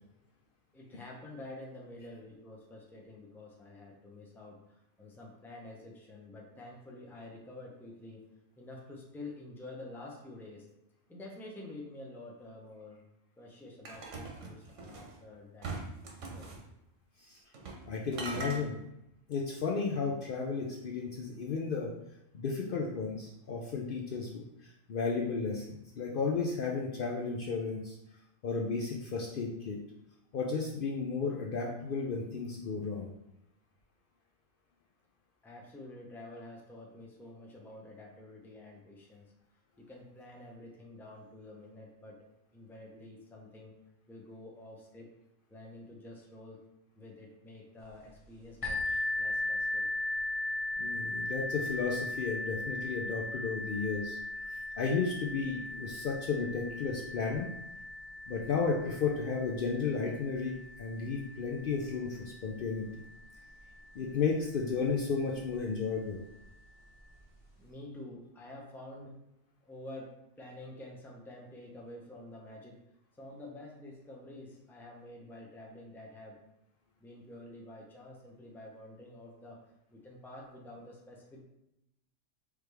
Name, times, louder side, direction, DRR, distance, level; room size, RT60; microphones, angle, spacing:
voice 1, 0.7-8.2 8.6-10.7 11.1-13.0 13.4-15.7 16.3-16.5 17.5-17.6 35.4-39.3 39.8-42.2 42.5-43.7 44.1-45.1 45.5-46.6 46.9-49.9 67.6-69.2 69.6-72.8 73.2-76.4 77.0-79.6 79.9-81.4, left 2 dB, ahead, -1 dB, 0.6 m, -49 dB
sound 1, 13.8-15.1 15.6-16.6 17.5-17.9 18.1-18.6, right 3 dB, 85° right, 1.2 m, -41 dB
voice 2, 17.9-18.8 19.3-21.9 22.3-28.0 28.4-29.8 30.3-33.1 50.8-54.2 54.8-57.5 58.3-62.9 63.9-66.2, left 5 dB, 60° left, -2 dB, 0.6 m, -33 dB
sound 2, 48.6-64.2 64.9-65.0 65.6-65.7, left 2 dB, 30° left, 1.0 m, -38 dB
4.7 x 3.3 x 3.3 m, 0.87 s
omnidirectional pair, 1.2 m